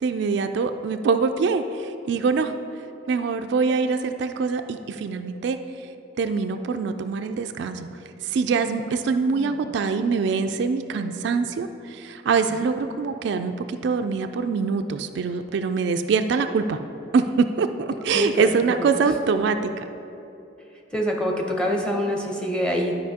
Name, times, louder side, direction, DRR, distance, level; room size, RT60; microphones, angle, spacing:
voice 1, 0.0-2.5 3.1-5.6 6.2-7.9 8.2-16.8 17.1-19.8, right 5 dB, 65° right, 7 dB, 0.3 m, -24 dB
voice 2, 18.1-18.9 20.9-23.0, equal, 5° left, 0 dB, 0.8 m, -26 dB
11.5 x 5.0 x 2.8 m, 2.9 s
head